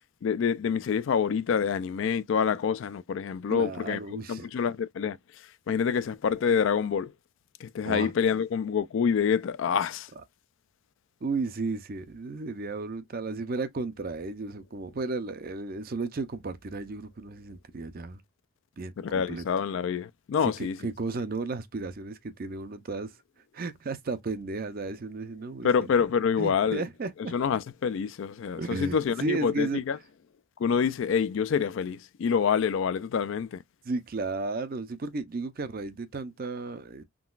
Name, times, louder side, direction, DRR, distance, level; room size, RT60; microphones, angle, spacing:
voice 1, 0.2-7.1 7.6-10.1 19.0-20.8 25.6-26.8 27.3-30.0 30.6-33.6, left 6 dB, 60° left, 0.3 m, -27 dB
voice 2, 3.5-4.5 7.9-8.1 11.2-18.2 18.8-19.4 20.4-23.1 23.5-25.7 26.4-27.3 28.6-29.8 33.9-37.0, right 3 dB, 40° right, 0.5 m, -34 dB
3.7 x 2.2 x 2.4 m
head